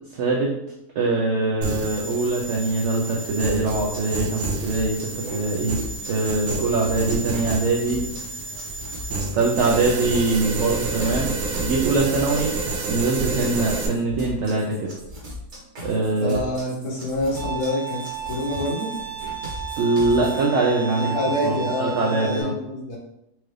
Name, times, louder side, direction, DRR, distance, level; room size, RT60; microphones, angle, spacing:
voice 1, 0.1-0.5 1.0-8.0 9.3-11.3 11.6-12.5 12.9-14.9 15.8-16.4 19.8-21.2 21.4-22.5, right 3 dB, 65° right, -2 dB, 0.7 m, -23 dB
sound 1, 1.6-13.9, right 3 dB, 80° right, 1.3 m, -29 dB
sound 2, 3.7-20.4, left 1 dB, 50° right, 1.3 m, -38 dB
voice 2, 16.2-18.9 21.0-23.0, left 1 dB, 55° left, -4 dB, 1.2 m, -27 dB
Bowed string instrument, 17.4-22.4, right 6 dB, 5° right, 0.5 m, -32 dB
4.5 x 2.4 x 3.2 m, 0.83 s
omnidirectional pair, 1.7 m